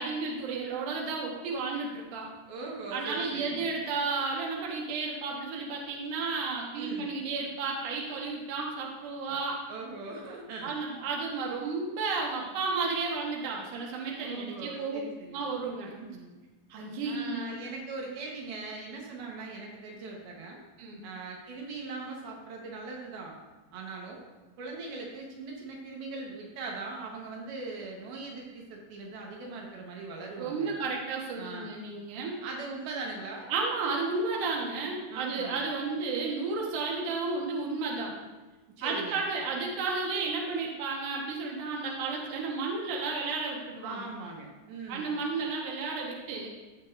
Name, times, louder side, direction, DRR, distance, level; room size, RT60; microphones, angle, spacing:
voice 1, 0.0-2.3 2.9-9.6 10.6-15.0 15.3-15.9 16.7-17.5 20.8-21.0 30.4-32.4 33.5-38.1 38.8-44.1 44.9-46.5, right 4 dB, 65° right, -2 dB, 2.7 m, -32 dB
voice 2, 2.5-3.8 6.7-7.2 9.3-9.4 9.7-10.7 14.2-15.4 15.9-16.3 17.0-20.6 21.0-23.3 23.7-24.2 24.6-30.8 31.4-31.7 32.4-33.5 35.1-35.6 38.8-39.3 43.8-45.2, right 3 dB, 85° right, -1 dB, 3.2 m, -40 dB
16.5 x 6.3 x 2.6 m, 1.2 s
omnidirectional pair, 4.2 m